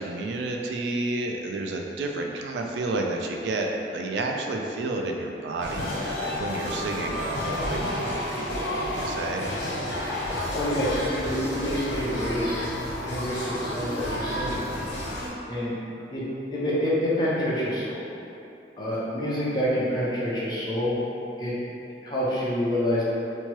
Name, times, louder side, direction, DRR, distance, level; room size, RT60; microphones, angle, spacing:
voice 1, 0.0-9.5, right 2 dB, 80° right, 1 dB, 0.3 m, -31 dB
sound 1, 5.6-15.3, left 1 dB, 85° left, 0.6 m, -30 dB
voice 2, 10.5-12.7 13.0-14.6 15.5-15.7 16.1-16.2 16.5-18.0 18.8-21.0 21.4-21.5 22.0-23.0, equal, 25° left, -9 dB, 0.6 m, -27 dB
2.9 x 2.2 x 2.9 m, 2.8 s
head